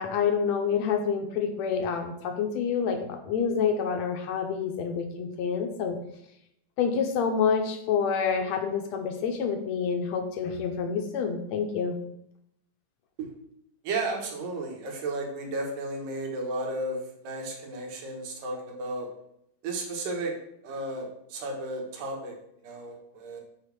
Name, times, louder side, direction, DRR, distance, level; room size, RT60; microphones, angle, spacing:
voice 1, 0.0-6.0 6.8-12.0, left 6 dB, 75° left, 5 dB, 1.7 m, -28 dB
voice 2, 13.8-19.1 19.6-20.3 20.6-22.3 22.6-23.4, right 2 dB, 90° right, 0 dB, 3.1 m, -33 dB
7.8 x 4.1 x 5.9 m, 0.76 s
omnidirectional pair, 3.8 m